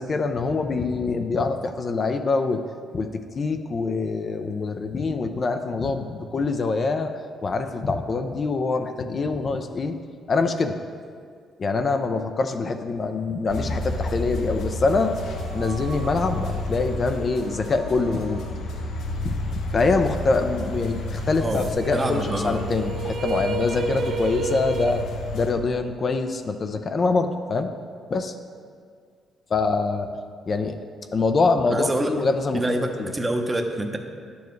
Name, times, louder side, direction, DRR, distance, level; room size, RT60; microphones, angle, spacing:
voice 1, 0.0-2.6 2.9-3.1 3.3-9.9 10.3-10.8 11.6-15.1 15.5-18.4 19.2-19.4 19.7-25.0 25.3-27.7 28.1-28.3 29.5-30.1 30.5-33.1, left 3 dB, 40° left, 6 dB, 0.5 m, -24 dB
sound 1, 13.5-25.5, left 2 dB, 75° left, 0.8 m, -31 dB
sound 2, 14.9-19.5 19.8-19.9 21.2-25.0, right 4 dB, 65° right, 0.6 m, -34 dB
voice 2, 21.9-22.6 31.7-32.1 32.5-34.0, right 1 dB, 20° right, 4 dB, 0.8 m, -26 dB
10.5 x 7.0 x 3.2 m, 2.1 s
cardioid pair, 90°, 0 cm